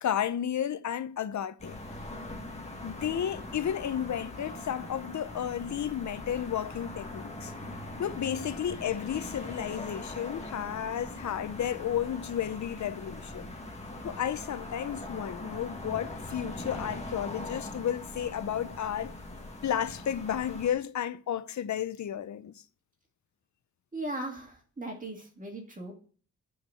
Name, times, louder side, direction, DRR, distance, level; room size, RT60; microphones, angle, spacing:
voice 1, 0.0-1.8 2.8-7.5 8.0-13.5 14.0-19.1 19.6-22.6, left 9 dB, 65° left, 0.7 m, -32 dB
sound 1, 1.6-20.7, left 2 dB, 20° left, 1.9 m, -41 dB
voice 2, 23.9-25.9, right 1 dB, 25° right, 2.2 m, -38 dB
9.4 x 4.7 x 7.7 m
wide cardioid pair, 135°, 31 cm